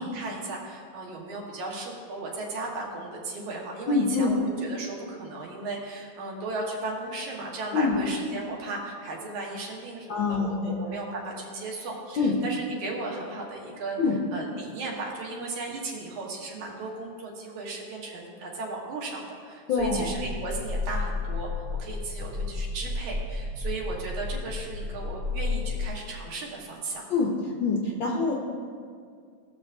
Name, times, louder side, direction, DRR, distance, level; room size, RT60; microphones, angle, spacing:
voice 1, 0.1-14.0 14.3-21.5 21.8-27.0, right 3 dB, 85° right, -2 dB, 2.9 m, -36 dB
voice 2, 3.9-4.3 7.7-8.0 10.1-10.7 12.2-12.4 14.0-14.2 19.7-20.1 27.1-27.3 27.6-28.3, left 4 dB, 80° left, -1 dB, 1.0 m, -25 dB
sound 1, 19.8-25.9, left 3 dB, 65° right, 1.8 m, -32 dB
19.0 x 6.6 x 2.7 m, 2.2 s
omnidirectional pair, 3.3 m